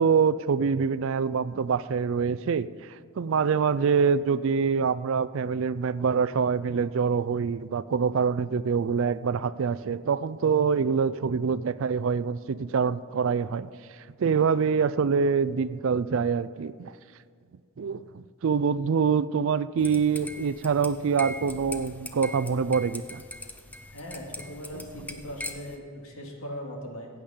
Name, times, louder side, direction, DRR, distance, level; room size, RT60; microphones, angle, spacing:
voice 1, 0.0-13.7 14.2-16.9 17.8-23.2 24.7-24.8, right 6 dB, 60° right, 16 dB, 0.4 m, -25 dB
sound 1, 19.8-25.8, left 2 dB, 5° left, 0.5 m, -41 dB
voice 2, 23.9-27.1, equal, 70° left, 0 dB, 2.3 m, -39 dB
15.0 x 8.7 x 5.1 m, 2.2 s
head